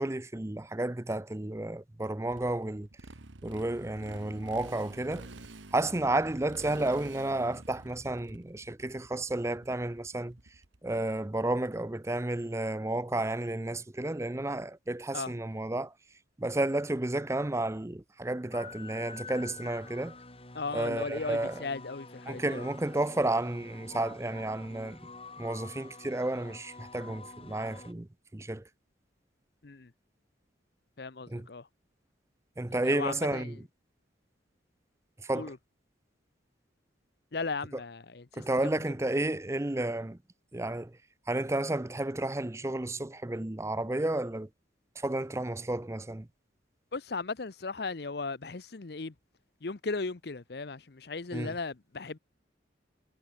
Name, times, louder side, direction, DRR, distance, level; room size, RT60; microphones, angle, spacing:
voice 1, 0.0-2.9 3.4-5.3 5.7-10.3 10.8-15.9 16.4-20.1 20.7-21.6 22.3-25.0 25.4-28.1 28.3-28.6 31.3-31.5 32.6-33.5 35.2-35.5 38.4-40.2 40.5-40.9 41.3-44.5 45.0-46.3 51.3-51.5, right 2 dB, 15° right, 0.5 m, -32 dB
Motorcycle, 2.3-10.9, right 2 dB, 80° right, 1.8 m, -49 dB
sound 1, 18.5-27.9, left 3 dB, 30° left, 6.1 m, -48 dB
voice 2, 20.5-22.7 29.6-29.9 31.0-31.7 32.8-33.6 35.3-35.6 37.3-38.4 46.9-49.1 49.6-52.2, left 4 dB, 55° left, 0.8 m, -36 dB
head